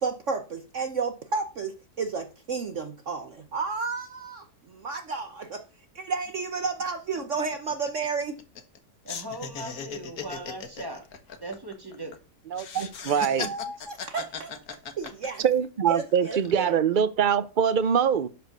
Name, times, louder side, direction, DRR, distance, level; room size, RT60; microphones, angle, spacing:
voice 1, 0.0-5.6 5.9-8.4 13.4-14.5 15.0-15.4 15.9-16.8, right 4 dB, 50° right, 1.2 m, -32 dB
sound 1, 6.3-6.4 6.6-6.8 7.2-8.8 9.1-12.2 12.5-15.7 16.1-16.7, left 6 dB, 65° left, 1.7 m, -38 dB
voice 2, 9.0-11.0 11.4-12.2 12.8-12.9 13.4-13.5, right 1 dB, 15° right, 2.5 m, -38 dB
voice 3, 13.1-13.5 15.4-18.3, right 7 dB, 90° right, 0.4 m, -23 dB
12.0 x 5.1 x 6.6 m
omnidirectional pair, 1.8 m